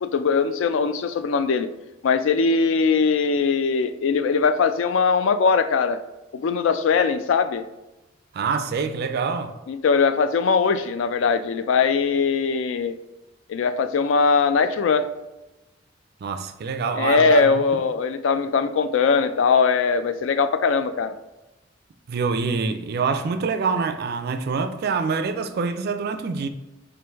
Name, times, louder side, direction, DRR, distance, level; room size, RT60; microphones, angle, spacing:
voice 1, 0.0-1.7 2.0-6.0 6.3-7.6 9.7-12.9 13.5-15.1 17.0-21.1, left 5 dB, 70° left, 0.3 m, -21 dB
voice 2, 8.3-9.6 16.2-17.8 22.1-26.5, right 5 dB, 55° right, 0.4 m, -26 dB
4.5 x 2.5 x 3.4 m
head